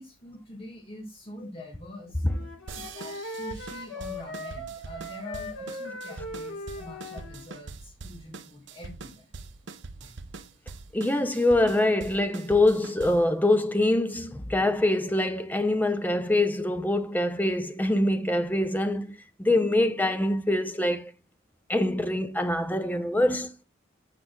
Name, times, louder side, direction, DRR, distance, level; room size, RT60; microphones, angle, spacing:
voice 1, 0.0-2.2 2.9-9.3 10.0-10.1, left 1 dB, 25° left, 1.5 m, -44 dB
Wind instrument woodwind instrument, 2.2-7.5, left 1 dB, 75° left, 1.5 m, -39 dB
sound 1, 2.7-13.3, right 4 dB, 55° right, 0.6 m, -43 dB
voice 2, 10.9-19.1 19.4-21.1 21.7-23.6, left 1 dB, 10° left, 0.5 m, -24 dB
14.0 x 5.0 x 2.2 m
head